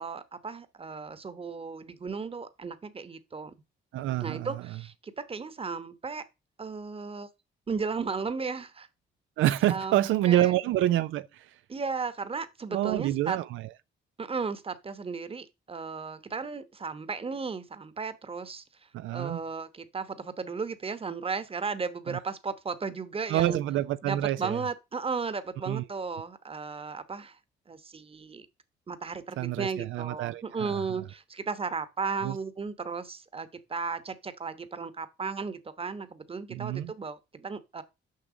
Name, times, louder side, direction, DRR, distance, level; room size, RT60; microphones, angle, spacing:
voice 1, 0.0-3.5 4.2-6.2 6.6-7.3 7.7-8.9 9.7-10.5 11.7-13.4 14.2-18.6 19.1-23.6 24.0-27.4 27.7-28.5 28.9-37.8, right 5 dB, 30° right, 1.1 m, -35 dB
voice 2, 3.9-4.5 9.4-11.5 12.7-13.7 18.9-19.4 22.1-22.2 23.3-24.6 25.7-25.8 29.4-30.8 32.2-32.4 36.5-36.9, right 13 dB, 80° right, 0.5 m, -27 dB
6.6 x 6.0 x 5.0 m
cardioid pair, 90°, 20 cm